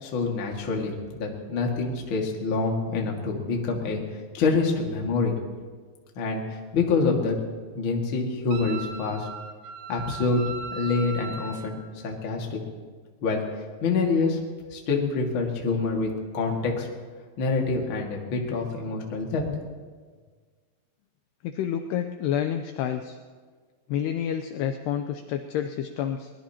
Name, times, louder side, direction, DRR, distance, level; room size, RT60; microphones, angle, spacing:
voice 1, 0.0-4.0 4.3-5.3 6.1-7.3 7.7-9.3 9.9-10.4 10.7-11.8 12.0-12.6 13.2-13.4 13.8-14.4 14.7-16.1 16.3-16.9 17.4-19.4, left 4 dB, 45° left, 0 dB, 1.6 m, -26 dB
Wind instrument woodwind instrument, 8.5-11.7, right 4 dB, 70° right, 2.3 m, -38 dB
voice 2, 21.4-23.2 23.9-26.3, left 9 dB, 85° left, 6 dB, 2.4 m, -29 dB
23.5 x 20.0 x 2.9 m, 1.5 s
omnidirectional pair, 5.4 m